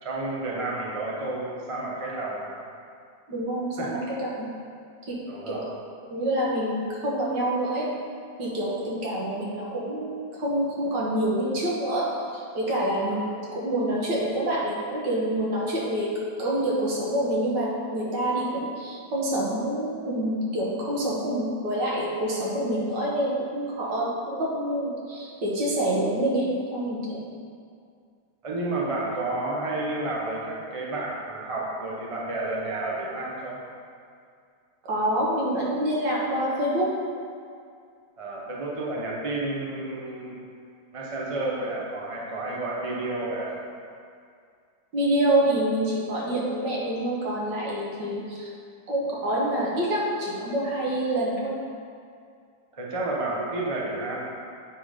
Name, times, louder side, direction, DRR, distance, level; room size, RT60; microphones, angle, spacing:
voice 1, 0.0-2.5 3.8-3.9 5.3-5.6 28.4-33.6 38.2-40.4 40.9-43.6 52.7-54.2, right 2 dB, 40° right, -4 dB, 0.4 m, -31 dB
voice 2, 3.3-4.5 5.1-5.2 5.5-5.7 6.1-7.9 8.4-16.1 16.4-27.3 34.8-36.9 44.9-48.5 48.9-51.6, right 1 dB, 60° right, -5 dB, 1.8 m, -27 dB
7.8 x 3.8 x 5.0 m, 2.3 s
omnidirectional pair, 2.2 m